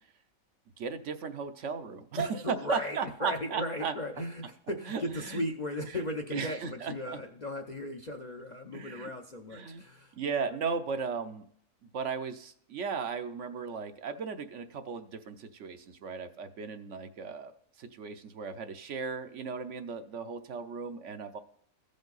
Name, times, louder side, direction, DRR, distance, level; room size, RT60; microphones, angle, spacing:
voice 1, 0.8-3.9 4.8-5.4 5.9-7.2 8.7-9.1 9.5-9.8 10.2-11.4 11.9-17.5 17.8-21.4, right 5 dB, 65° right, 8 dB, 1.0 m, -36 dB
voice 2, 2.2-10.2, left 1 dB, 40° left, 4 dB, 0.6 m, -37 dB
15.5 x 5.3 x 3.9 m, 0.65 s
omnidirectional pair, 1.5 m